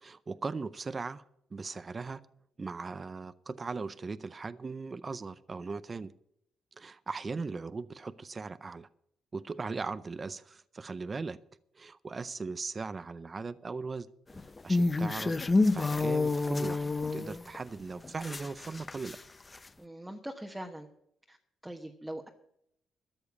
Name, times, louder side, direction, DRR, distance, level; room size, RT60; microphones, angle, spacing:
voice 1, 0.0-1.2 1.5-2.2 2.6-6.1 6.8-8.9 9.3-11.4 11.7-14.1 14.6-15.4 15.6-19.2, right 4 dB, 30° right, 15 dB, 0.5 m, -39 dB
sound 1, 14.3-17.6 18.0-19.2 19.5-19.6, left 3 dB, 25° left, 0.6 m, -28 dB
voice 2, 19.8-20.9 21.3-21.4 21.6-22.3, right 1 dB, 5° right, 2 dB, 1.2 m, -42 dB
13.5 x 6.9 x 8.2 m, 0.76 s
cardioid pair, 90°, 0 cm